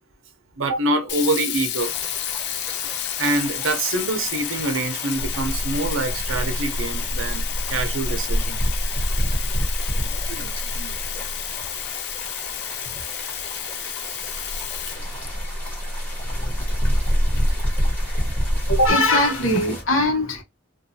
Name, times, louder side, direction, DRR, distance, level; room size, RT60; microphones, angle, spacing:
voice 1, 0.6-1.9 3.2-8.6 9.9-11.2 12.9-13.0, right 2 dB, 75° right, 0.7 m, -26 dB
Sink (filling or washing), 1.1-15.8, left 12 dB, 55° left, 0.3 m, -31 dB
sound 1, 1.8-19.8, left 1 dB, 10° left, 1.1 m, -37 dB
sound 2, 5.1-11.8 14.1-18.9, equal, 30° left, 1.1 m, -25 dB
voice 2, 18.7-20.4, left 1 dB, 80° left, 0.9 m, -20 dB
2.7 x 2.3 x 2.7 m
head